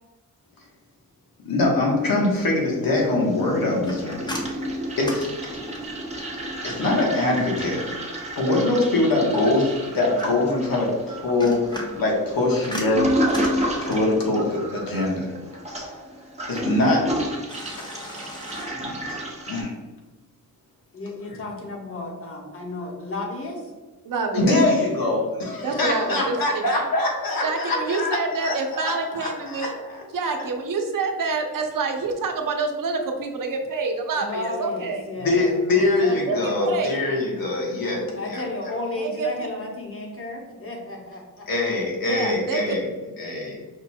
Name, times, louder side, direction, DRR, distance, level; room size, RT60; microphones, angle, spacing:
voice 1, 1.4-4.4 5.0-5.5 6.6-7.8 8.3-13.1 13.8-15.3 16.5-17.1 17.8-17.9 18.7-19.2 19.5-19.7 24.3-30.0 35.2-38.4 41.5-42.9 43.2-43.6, left 2 dB, 90° left, -2 dB, 1.3 m, -23 dB
Toilet flush, 2.0-2.9 3.1-19.6, equal, 20° right, 0.9 m, -31 dB
sound 1, 3.8-6.1 9.4-10.7 11.2-14.2 17.5-18.7, equal, 15° left, 0.9 m, -37 dB
voice 2, 20.9-23.7 34.2-37.1 38.1-41.5, left 2 dB, 40° left, 0 dB, 1.1 m, -33 dB
voice 3, 24.0-24.5 25.6-26.4 27.4-29.7 30.1-35.0 36.3-37.0 38.9-39.3 42.0-42.8, right 4 dB, 70° right, 3 dB, 0.8 m, -27 dB
5.2 x 2.3 x 4.2 m, 1.2 s
wide cardioid pair, 115°, 34 cm